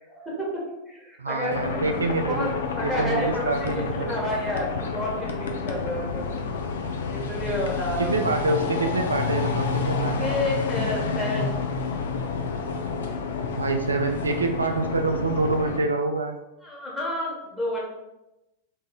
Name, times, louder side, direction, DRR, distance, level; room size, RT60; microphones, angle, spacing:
voice 1, 0.1-1.8 2.3-2.5 2.8-6.8 7.1-8.2 10.0-11.6 13.3-13.5 16.6-17.8, left 1 dB, 5° left, -4 dB, 1.4 m, -30 dB
voice 2, 1.2-4.2 8.0-10.3 13.5-16.4, right 3 dB, 75° right, 5 dB, 0.3 m, -26 dB
sound 1, 1.5-15.8, left 5 dB, 65° left, 0.5 m, -29 dB
3.7 x 2.7 x 4.4 m, 0.96 s
figure-of-eight pair, 90°, 0 cm